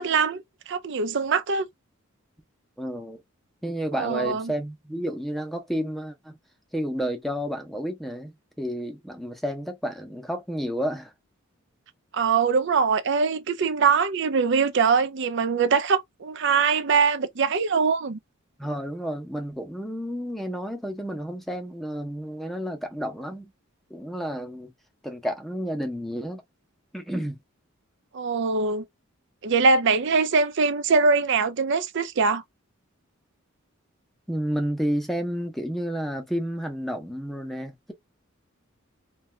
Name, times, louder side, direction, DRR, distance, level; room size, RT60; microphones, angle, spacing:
voice 1, 0.0-1.7 3.9-4.5 12.1-18.2 28.1-28.8 29.4-32.4, right 5 dB, 60° right, 0.5 m, -22 dB
voice 2, 2.8-3.2 3.6-6.4 6.7-8.3 8.6-11.1 18.6-23.5 23.9-24.7 25.0-26.4 26.9-27.4 34.3-37.9, equal, ahead, 0.7 m, -31 dB
2.7 x 2.3 x 3.2 m
head